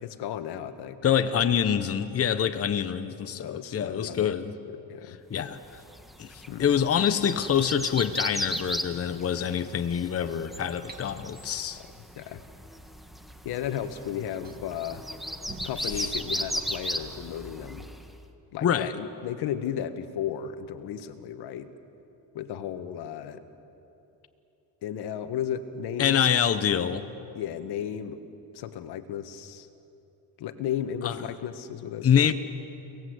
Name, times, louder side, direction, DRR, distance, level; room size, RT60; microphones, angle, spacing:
voice 1, 0.0-1.0 3.4-4.4 4.9-5.2 6.5-6.6 12.2-12.4 13.4-15.0 15.6-17.9 18.5-21.7 22.3-23.4 24.8-26.3 27.3-28.2 28.5-29.7 30.4-32.3, left 9 dB, 75° left, 9 dB, 1.6 m, -34 dB
voice 2, 1.0-4.5 5.0-5.8 6.2-11.8 15.9-16.1 18.6-18.9 26.0-27.1 31.0-31.2 32.0-32.3, left 8 dB, 35° left, 9 dB, 1.0 m, -26 dB
sound 1, 5.6-18.1, equal, ahead, 1.7 m, -36 dB
sound 2, 10.9-11.0 12.9-13.0 13.6-14.7 15.5-16.7, right 2 dB, 20° right, 2.5 m, -45 dB
30.0 x 19.0 x 8.1 m, 2.9 s
cardioid pair, 105°, 40 cm